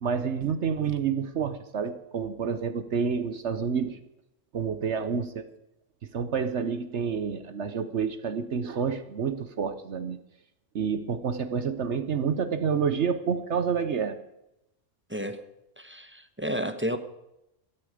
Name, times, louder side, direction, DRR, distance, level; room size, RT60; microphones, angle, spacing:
voice 1, 0.0-4.0 4.5-5.5 6.1-10.2 10.7-14.2, right 6 dB, 65° right, 10 dB, 1.2 m, -28 dB
voice 2, 15.1-15.4 15.8-17.0, equal, 10° right, 9 dB, 0.9 m, -31 dB
17.0 x 13.0 x 5.0 m, 0.85 s
omnidirectional pair, 1.3 m